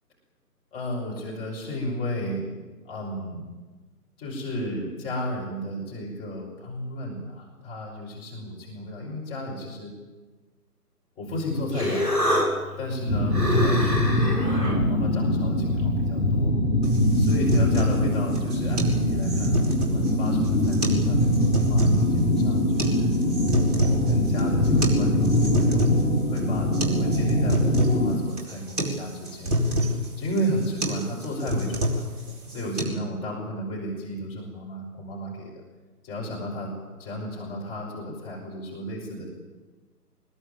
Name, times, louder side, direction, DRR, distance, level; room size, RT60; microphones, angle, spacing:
voice 1, 0.7-2.4 2.8-3.5 4.2-9.9 11.2-12.2 12.8-14.4 14.7-16.5 17.2-23.1 23.8-25.9 26.3-32.0 32.5-35.5 36.0-39.3, equal, 10° left, -3 dB, 5.0 m, -33 dB
Human voice, 11.3-16.5, equal, 90° left, 7.9 m, -28 dB
sound 1, 13.1-28.2, left 1 dB, 65° left, 3.4 m, -23 dB
sound 2, 16.8-32.8, equal, 25° right, 4.7 m, -28 dB
24.5 x 20.5 x 9.1 m, 1.3 s
figure-of-eight pair, 150°, 48 cm